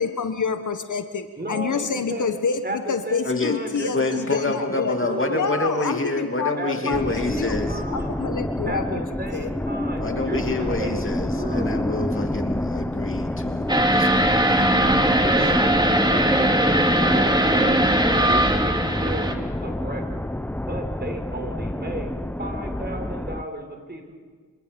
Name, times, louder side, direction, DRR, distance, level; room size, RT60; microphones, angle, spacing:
voice 1, 0.0-4.9 5.3-7.6 7.9-9.0 9.3-9.5, left 5 dB, 60° left, 8 dB, 1.4 m, -28 dB
voice 2, 1.4-2.3 2.6-5.4 6.6-8.2 8.6-11.7 14.8-17.8 18.1-20.2 20.7-22.1 22.4-24.2, right 1 dB, 30° right, 3 dB, 5.9 m, -34 dB
voice 3, 3.2-3.6 3.9-7.8 10.0-14.8 15.4-15.6, left 2 dB, 35° left, 4 dB, 2.8 m, -28 dB
sound 1, 6.9-23.4, left 1 dB, 5° left, 0.7 m, -27 dB
sound 2, 13.7-19.3, right 1 dB, 10° right, 2.5 m, -20 dB
28.0 x 25.5 x 5.4 m, 1.5 s
cardioid pair, 50°, 34 cm